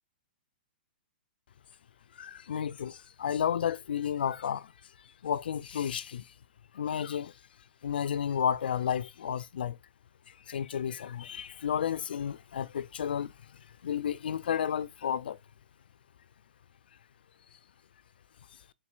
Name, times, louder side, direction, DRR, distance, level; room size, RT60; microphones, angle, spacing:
voice 1, 2.1-4.7 5.2-6.3 6.7-7.3 7.8-9.8 10.3-15.4, left 8 dB, 80° left, 0.4 m, -32 dB
4.3 x 4.0 x 2.4 m
hypercardioid pair, 145°, 5 cm